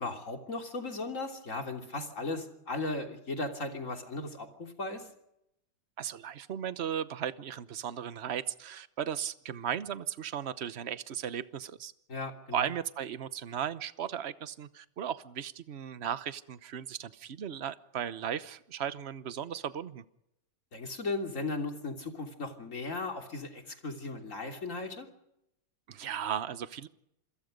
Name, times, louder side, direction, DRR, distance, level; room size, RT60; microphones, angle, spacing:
voice 1, 0.0-5.1 12.1-12.7 20.7-25.1, left 3 dB, 40° left, 4 dB, 3.4 m, -37 dB
voice 2, 6.0-11.9 12.5-20.0 25.9-26.9, right 9 dB, 45° right, 13 dB, 0.9 m, -36 dB
28.0 x 22.0 x 5.3 m, 0.83 s
omnidirectional pair, 2.2 m